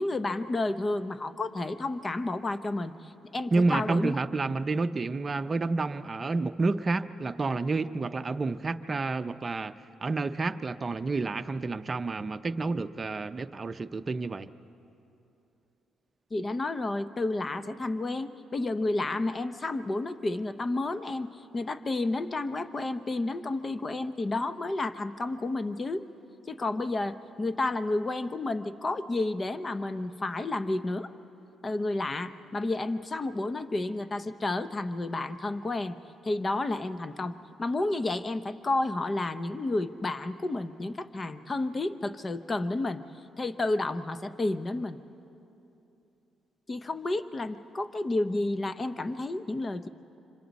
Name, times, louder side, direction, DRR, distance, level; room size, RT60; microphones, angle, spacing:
voice 1, 0.0-4.2 16.3-26.0 26.5-31.1 31.6-36.0 36.2-43.0 43.4-45.0 46.7-49.9, left 2 dB, 30° left, 12 dB, 0.8 m, -31 dB
voice 2, 3.5-9.7 10.0-14.5, right 3 dB, 30° right, 9 dB, 0.7 m, -29 dB
26.5 x 25.5 x 4.2 m, 2.9 s
cardioid pair, 90°, 0 cm